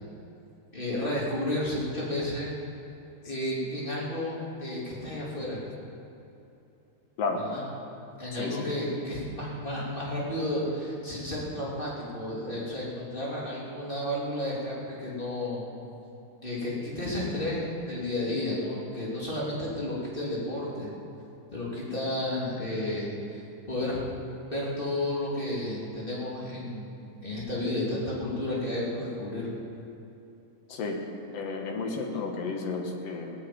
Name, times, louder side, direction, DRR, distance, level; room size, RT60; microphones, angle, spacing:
voice 1, 0.7-2.5 3.2-5.6 7.4-7.6 8.2-15.6 16.4-20.9 21.5-23.4 23.7-24.1 24.4-26.9 27.2-29.5, left 1 dB, 15° left, -6 dB, 3.2 m, -32 dB
voice 2, 8.3-8.7 30.7-31.0 31.3-33.3, left 3 dB, 60° left, 3 dB, 2.5 m, -32 dB
17.5 x 8.8 x 8.8 m, 2.9 s
omnidirectional pair, 3.4 m